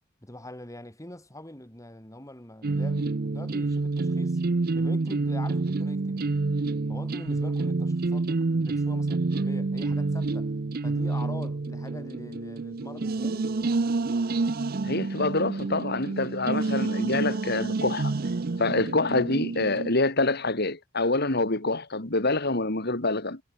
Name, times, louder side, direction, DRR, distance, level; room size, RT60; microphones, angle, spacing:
voice 1, 0.2-4.4 4.7-6.4 6.9-10.5 10.8-13.6, left 1 dB, 15° left, 5.5 m, -43 dB
sound 1, 2.6-19.9, right 3 dB, 50° right, 0.6 m, -28 dB
voice 2, 14.8-18.1 18.6-23.4, left 2 dB, 55° left, 3.2 m, -26 dB
head